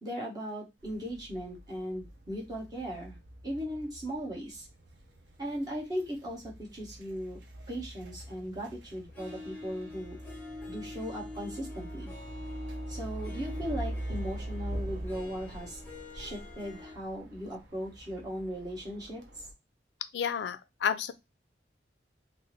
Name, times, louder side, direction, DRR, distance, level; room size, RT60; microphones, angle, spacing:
voice 1, 0.0-3.2 3.4-4.7 5.4-7.4 7.7-10.2 10.7-12.1 12.9-15.8 16.1-19.2, equal, 20° right, 1.2 m, -38 dB
sound 1, 0.8-19.5, right 1 dB, 75° right, 0.7 m, -43 dB
Harp, 9.1-17.0, left 3 dB, 10° left, 1.0 m, -46 dB
voice 2, 20.1-21.1, left 7 dB, 75° left, 0.3 m, -31 dB
3.3 x 2.0 x 3.1 m
head